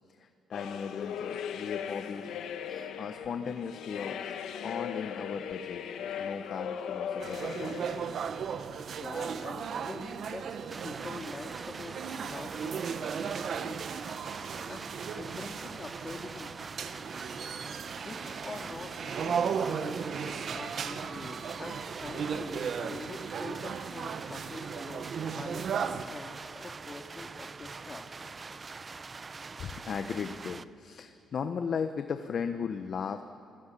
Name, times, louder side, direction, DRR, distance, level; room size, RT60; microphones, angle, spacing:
voice 1, 0.1-2.3 3.0-4.4 4.6-5.8 6.2-7.8 29.6-33.2, left 6 dB, 55° left, 8 dB, 1.0 m, -36 dB
sound 1, 0.5-8.3, left 8 dB, 80° left, 1.4 m, -38 dB
sound 2, 7.2-26.1, right 7 dB, 60° right, 1.2 m, -36 dB
voice 2, 8.8-13.8 14.7-14.9 15.2-16.6 18.0-28.1, left 2 dB, 25° left, 3 dB, 2.4 m, -44 dB
sound 3, 10.7-30.6, right 4 dB, 30° right, 0.7 m, -44 dB
29.5 x 17.5 x 8.5 m, 2.8 s
cardioid pair, 100°, 0 cm